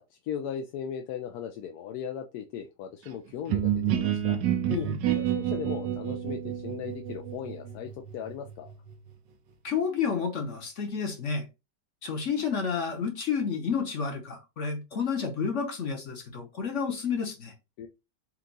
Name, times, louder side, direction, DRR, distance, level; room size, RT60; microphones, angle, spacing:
voice 1, 0.0-4.4 5.1-8.7 17.8-17.9, left 8 dB, 70° left, 1.0 m, -38 dB
sound 1, 3.5-9.1, right 10 dB, 85° right, 1.3 m, -29 dB
voice 2, 9.6-11.5 12.0-17.5, left 6 dB, 50° left, 1.1 m, -30 dB
4.5 x 2.4 x 3.9 m
omnidirectional pair, 1.9 m